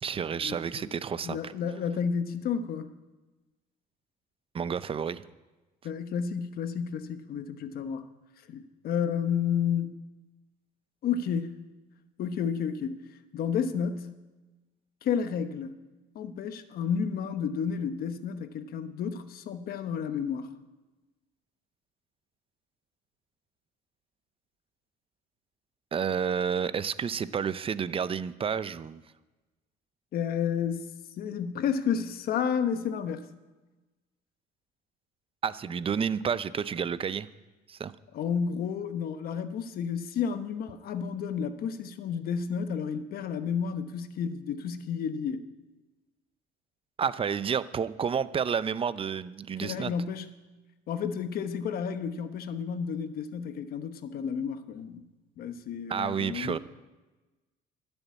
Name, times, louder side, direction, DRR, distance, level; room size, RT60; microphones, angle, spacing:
voice 1, 0.0-1.5 4.5-5.2 25.9-29.0 35.4-37.3 37.7-37.9 47.0-49.9 55.9-56.6, right 7 dB, 35° right, 0.6 m, -30 dB
voice 2, 1.2-2.9 5.8-8.1 8.5-9.9 11.0-11.6 12.2-13.0 13.3-14.1 15.0-15.7 16.1-20.5 30.1-30.9 31.2-33.2 38.1-45.4 49.6-50.3 50.9-55.0 55.4-56.6, left 7 dB, 65° left, 1.1 m, -31 dB
12.5 x 7.0 x 9.3 m
cardioid pair, 110°, 17 cm